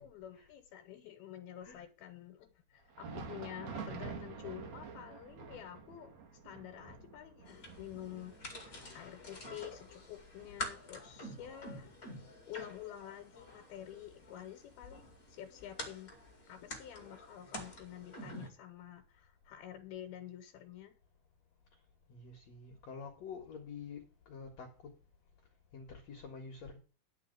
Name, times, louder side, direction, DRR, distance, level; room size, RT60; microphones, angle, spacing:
voice 1, 0.0-6.1 6.4-11.9 12.5-16.1 16.5-20.9, left 11 dB, 75° left, 2.8 m, -49 dB
Thunder, 2.8-12.2 12.6-12.8 13.4-13.6 14.6-14.7, right 5 dB, 55° right, 2.5 m, -49 dB
sound 1, 7.5-18.5, left 1 dB, 30° left, 1.9 m, -48 dB
voice 2, 22.1-24.7 25.7-26.8, left 5 dB, 55° left, 2.2 m, -48 dB
10.5 x 4.8 x 7.8 m
omnidirectional pair, 4.5 m